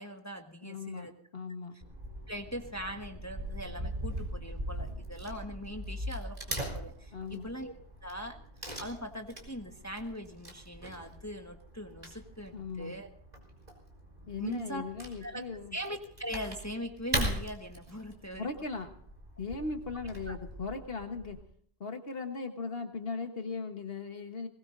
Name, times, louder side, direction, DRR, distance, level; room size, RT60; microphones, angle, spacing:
voice 1, 0.0-1.1 1.7-1.8 2.3-7.7 8.0-8.4 8.8-13.1 14.4-14.8 15.2-15.5 15.7-18.5 20.3-20.4, equal, 15° left, 4 dB, 1.2 m, -41 dB
voice 2, 0.6-1.7 7.1-7.5 12.5-12.9 14.3-15.7 18.4-18.9 19.4-21.4 21.8-24.5, left 4 dB, 65° left, 5 dB, 1.5 m, -38 dB
Wood / Tearing, 1.8-21.4, right 1 dB, 40° right, 4.4 m, -41 dB
21.0 x 20.5 x 2.6 m, 0.63 s
omnidirectional pair, 1.1 m